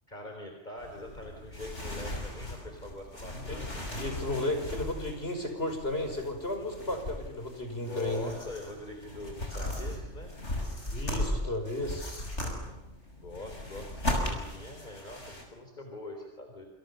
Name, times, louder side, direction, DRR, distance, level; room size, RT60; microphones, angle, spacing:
voice 1, 0.1-3.8 7.8-10.3 13.2-16.7, left 1 dB, 40° left, 3 dB, 4.0 m, -43 dB
sound 1, 0.8-15.4, left 1 dB, 80° left, 6.8 m, -37 dB
voice 2, 3.9-8.3 10.9-12.3, left 1 dB, 60° left, 6 dB, 5.8 m, -33 dB
28.0 x 28.0 x 6.9 m, 0.88 s
omnidirectional pair, 1.2 m